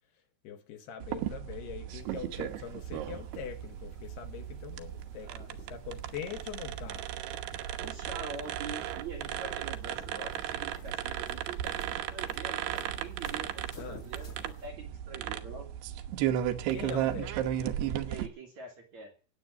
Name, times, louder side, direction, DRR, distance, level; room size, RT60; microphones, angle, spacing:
voice 1, 0.4-7.1 13.7-14.0 16.7-17.5, left 8 dB, 65° left, 3.4 m, -43 dB
sound 1, 1.0-18.3, right 11 dB, 70° right, 2.8 m, -35 dB
sound 2, 2.0-14.7, left 2 dB, 30° left, 1.5 m, -54 dB
voice 2, 7.6-15.7 18.0-19.1, right 4 dB, 45° right, 2.8 m, -45 dB
17.5 x 8.6 x 7.9 m
omnidirectional pair, 5.4 m